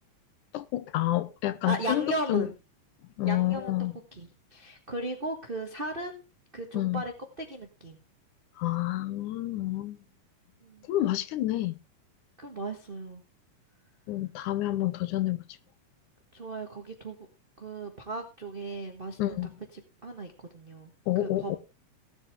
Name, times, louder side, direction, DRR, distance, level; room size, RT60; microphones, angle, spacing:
voice 1, 0.5-2.5 3.2-4.0 6.7-7.0 8.6-10.0 10.9-11.8 14.1-15.4 19.2-19.5 21.1-21.6, left 15 dB, 80° left, 2.2 m, -29 dB
voice 2, 1.7-2.5 3.2-3.7 4.1-6.2 6.5-8.0 10.6-10.9 12.4-13.2 16.3-17.2 17.6-19.4 20.0-21.6, right 2 dB, 55° right, 0.6 m, -36 dB
17.0 x 8.1 x 3.5 m
omnidirectional pair, 3.6 m